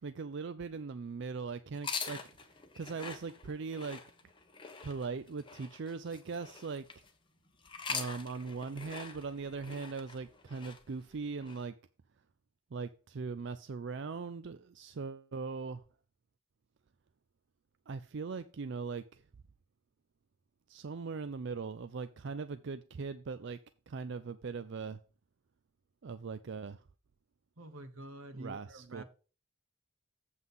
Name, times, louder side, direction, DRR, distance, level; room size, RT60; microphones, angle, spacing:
voice 1, 0.0-2.2 2.8-4.0 4.8-6.9 7.9-11.7 12.7-15.8 17.9-19.2 20.7-23.6 23.9-25.0 26.0-26.8 28.3-29.0, right 4 dB, 60° right, 12 dB, 0.4 m, -40 dB
sound 1, 1.7-7.1 7.6-11.6, left 5 dB, 25° left, 1.1 m, -44 dB
voice 2, 27.6-29.0, right 1 dB, 85° right, 10 dB, 1.2 m, -47 dB
7.9 x 5.8 x 5.4 m, 0.36 s
head